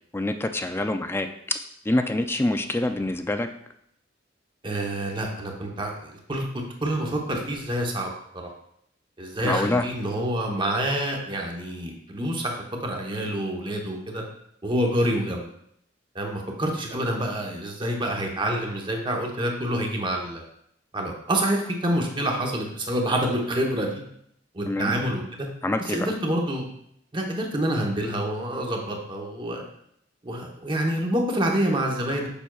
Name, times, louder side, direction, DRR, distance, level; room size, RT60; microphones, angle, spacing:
voice 1, 0.1-1.3 1.9-3.5 9.4-9.8 24.7-24.9 25.6-26.1, left 2 dB, 15° left, 7 dB, 0.4 m, -25 dB
voice 2, 4.6-8.5 9.2-12.6 12.8-14.2 14.6-15.5 16.1-20.4 20.9-24.0 24.5-25.5 25.9-26.7 27.1-29.6 30.2-32.3, right 1 dB, 25° right, 1 dB, 0.9 m, -27 dB
6.9 x 5.8 x 2.3 m, 0.72 s
head